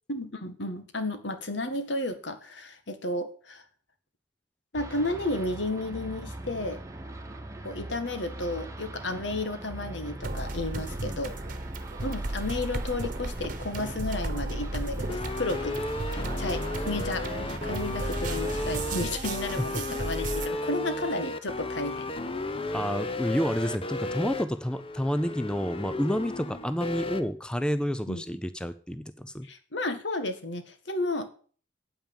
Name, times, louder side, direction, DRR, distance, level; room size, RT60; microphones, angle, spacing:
voice 1, 0.1-3.6 4.7-6.8 7.6-11.3 12.0-15.8 16.1-17.3 17.6-22.1 28.1-28.2 29.4-31.3, left 2 dB, 70° left, 9 dB, 1.7 m, -32 dB
sound 1, 4.7-19.0, right 1 dB, 15° right, 1.4 m, -41 dB
sound 2, 10.2-20.5, right 2 dB, 45° right, 1.3 m, -34 dB
sound 3, 15.1-27.2, left 2 dB, 30° left, 0.9 m, -34 dB
voice 2, 22.7-29.5, equal, 5° left, 12 dB, 0.5 m, -29 dB
9.2 x 8.8 x 7.1 m, 0.43 s
head